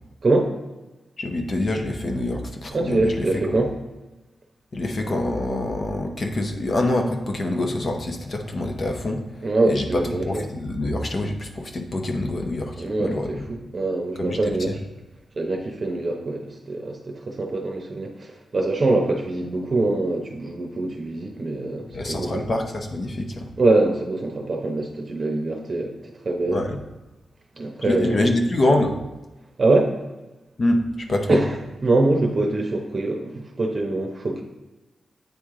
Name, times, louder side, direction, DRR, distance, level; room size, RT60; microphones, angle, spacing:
voice 1, 0.2-0.5 2.7-3.7 9.4-10.5 12.7-14.8 15.4-22.4 23.6-25.9 26.2-26.7 27.6-28.2 29.6-29.9 31.3-34.4, right 2 dB, 40° right, 1 dB, 0.7 m, -24 dB
voice 2, 1.2-3.6 4.7-9.2 9.7-10.0 10.3-13.4 14.2-14.4 14.7-14.8 21.9-23.5 26.5-26.8 27.8-29.0 30.6-31.4, left 1 dB, 45° left, 3 dB, 0.7 m, -25 dB
8.5 x 3.2 x 3.7 m, 1.1 s
wide cardioid pair, 105°, 0 cm